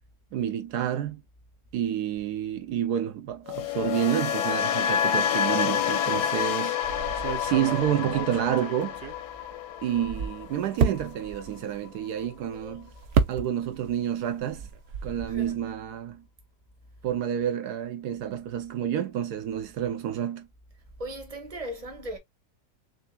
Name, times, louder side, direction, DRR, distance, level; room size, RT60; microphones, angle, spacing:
voice 1, 0.3-1.2 1.7-6.8 7.4-9.0 9.8-12.9 13.3-14.7 15.0-16.2 17.0-20.5, right 10 dB, 80° right, 1.2 m, -29 dB
sound 1, 3.5-11.6 11.8-12.2, left 8 dB, 90° left, 1.2 m, -29 dB
sound 2, 6.8-9.5 9.9-13.9 14.2-15.5, right 6 dB, 65° right, 0.6 m, -31 dB
voice 2, 12.2-12.9 15.3-15.5 21.0-22.2, equal, 25° right, 1.4 m, -38 dB
6.3 x 2.8 x 2.2 m
omnidirectional pair, 1.7 m